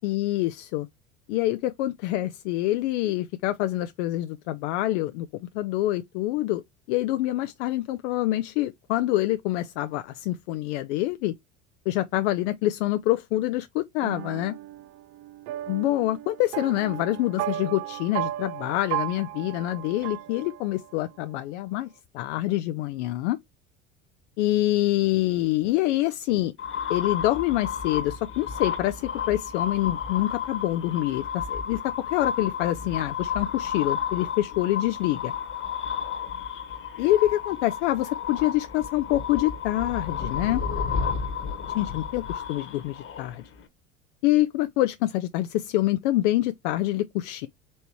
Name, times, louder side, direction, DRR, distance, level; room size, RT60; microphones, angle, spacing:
voice 1, 0.0-0.9 1.3-5.3 5.5-6.6 6.9-11.3 11.9-14.5 15.7-23.4 24.4-26.5 26.9-29.0 29.3-35.3 37.0-40.6 41.7-43.4 44.2-47.5, left 16 dB, 70° left, 0.5 m, -26 dB
sound 1, 14.0-21.0, right 14 dB, 65° right, 0.5 m, -35 dB
sound 2, 26.6-43.6, left 7 dB, 35° left, 1.2 m, -32 dB
4.2 x 3.3 x 2.9 m
hypercardioid pair, 75°, 36 cm